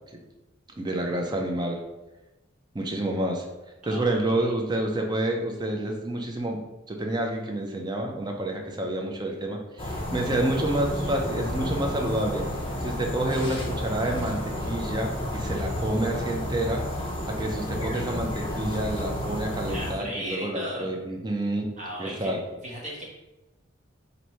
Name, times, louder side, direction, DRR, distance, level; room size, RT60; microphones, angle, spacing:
voice 1, 0.7-1.8 2.7-3.4 3.8-12.4 12.8-16.8 17.3-21.7 22.0-22.4, right 1 dB, 20° right, 2 dB, 0.5 m, -29 dB
voice 2, 3.8-4.5 19.7-20.9 21.8-23.0, right 1 dB, 40° right, -3 dB, 1.0 m, -37 dB
sound 1, 9.8-19.9, left 1 dB, 25° left, 0.6 m, -31 dB
3.1 x 2.6 x 4.2 m, 1.1 s
head